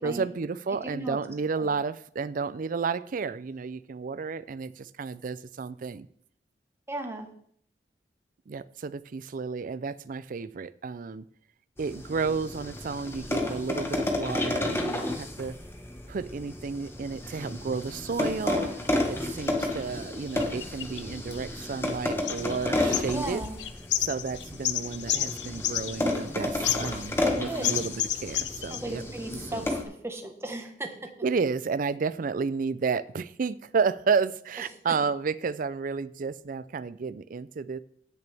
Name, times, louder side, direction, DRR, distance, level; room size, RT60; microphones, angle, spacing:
voice 1, 0.0-6.1 8.5-11.3 11.8-15.6 16.1-18.7 19.1-23.4 24.0-29.0 29.5-29.7 31.2-37.8, right 5 dB, 50° right, 17 dB, 0.4 m, -31 dB
voice 2, 0.8-1.2 1.6-1.7 6.9-7.3 23.1-23.6 27.3-27.8 28.7-29.6 30.0-30.9, right 1 dB, 15° right, 4 dB, 1.3 m, -35 dB
sound 1, 11.8-29.8, left 1 dB, 15° left, 1.3 m, -32 dB
sound 2, 19.5-19.7 20.4-21.9 22.3-22.6 22.9-26.3 26.6-27.3 27.6-28.8, left 12 dB, 80° left, 0.6 m, -31 dB
16.5 x 6.9 x 3.4 m, 0.65 s
head